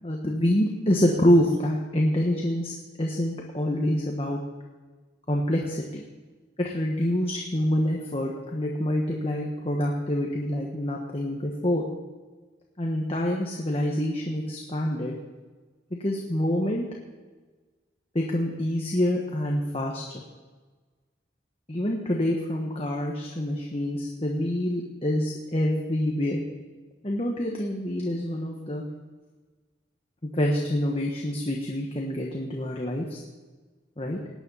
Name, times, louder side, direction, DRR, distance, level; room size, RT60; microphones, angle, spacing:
voice 1, 0.0-4.4 5.3-6.0 6.6-11.8 12.8-15.1 16.0-16.8 18.1-20.0 21.7-26.4 27.0-28.8 30.3-33.2 34.0-34.2, left 1 dB, 30° left, -1 dB, 1.3 m, -26 dB
17.5 x 9.8 x 5.6 m, 1.3 s
head